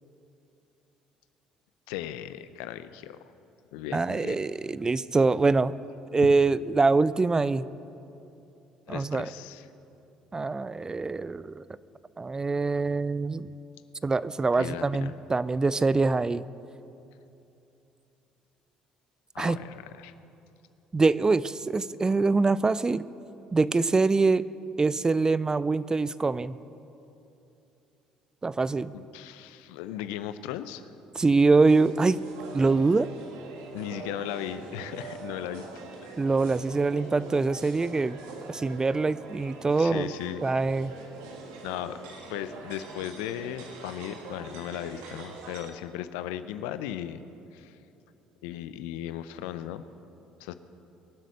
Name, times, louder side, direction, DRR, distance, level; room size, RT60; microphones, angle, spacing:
voice 1, 1.9-3.2 3.7-4.4 8.9-9.6 14.6-15.1 19.3-20.1 28.9-30.8 33.7-35.6 36.0-36.1 39.8-40.4 41.6-42.0 42.3-47.2 47.5-47.8 48.4-49.8 50.4-50.5, left 11 dB, 80° left, 12 dB, 0.6 m, -37 dB
voice 2, 3.9-5.7 6.1-7.7 8.9-9.3 10.3-11.6 12.2-13.5 14.0-16.4 19.4-19.6 20.9-23.0 23.5-24.4 24.8-26.6 28.4-28.9 31.2-32.2 32.5-33.1 36.2-38.2 38.5-40.1 40.4-40.9, right 3 dB, 25° right, 18 dB, 0.4 m, -24 dB
sound 1, 31.6-45.7, right 3 dB, 80° right, 1.7 m, -44 dB
22.5 x 7.7 x 6.5 m, 2.8 s
hypercardioid pair, 60°, 3 cm